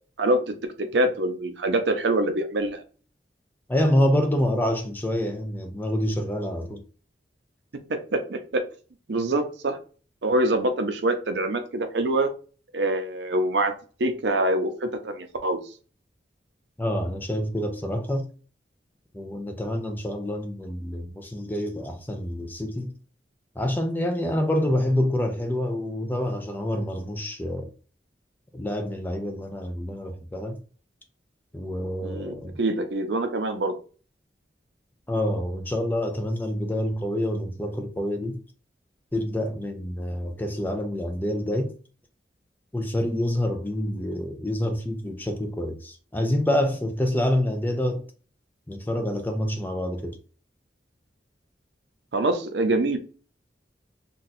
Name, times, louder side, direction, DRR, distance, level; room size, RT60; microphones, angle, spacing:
voice 1, 0.2-2.8 7.9-8.6 9.1-9.8 10.2-12.3 12.7-13.7 14.0-15.6 32.0-33.8 52.1-53.0, right 1 dB, 80° right, 0.6 m, -25 dB
voice 2, 3.7-6.8 16.8-18.3 19.1-22.9 23.6-27.7 28.5-30.6 31.5-32.6 35.1-38.4 39.1-41.7 42.7-48.0 48.7-50.2, left 1 dB, 10° left, 0.4 m, -27 dB
2.6 x 2.3 x 3.9 m
head